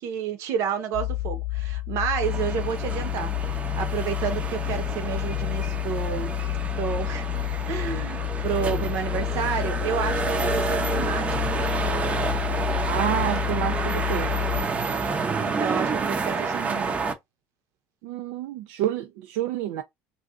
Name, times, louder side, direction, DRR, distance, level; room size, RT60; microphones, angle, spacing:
voice 1, 0.0-6.4 6.7-7.3 7.7-11.3 15.0-17.0, right 8 dB, 60° right, 0.8 m, -30 dB
sound 1, 0.9-14.6, left 17 dB, 50° left, 0.4 m, -29 dB
sound 2, 2.2-17.1, right 4 dB, 25° right, 0.6 m, -29 dB
voice 2, 12.9-14.3 18.0-19.8, right 12 dB, 80° right, 0.4 m, -28 dB
2.5 x 2.3 x 3.5 m
cardioid pair, 135°, 6 cm